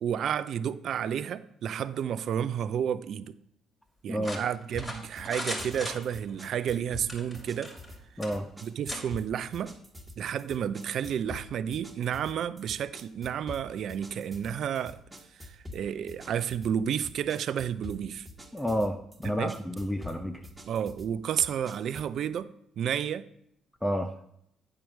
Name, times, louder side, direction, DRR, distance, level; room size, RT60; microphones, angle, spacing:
voice 1, 0.0-3.4 4.0-7.7 8.6-9.8 10.2-15.0 15.4-18.3 19.2-19.6 20.6-23.3, right 9 dB, 65° right, 0.5 m, -31 dB
voice 2, 4.1-4.4 8.2-8.5 18.5-20.4 23.8-24.1, equal, 10° left, 0.6 m, -30 dB
sound 1, 4.2-6.5 7.0-7.9 8.2-8.4 8.9-9.0, left 1 dB, 25° left, 2.8 m, -37 dB
sound 2, 4.7-22.2, left 1 dB, 15° right, 1.6 m, -47 dB
8.8 x 4.6 x 6.2 m
supercardioid pair, 65°, 0 cm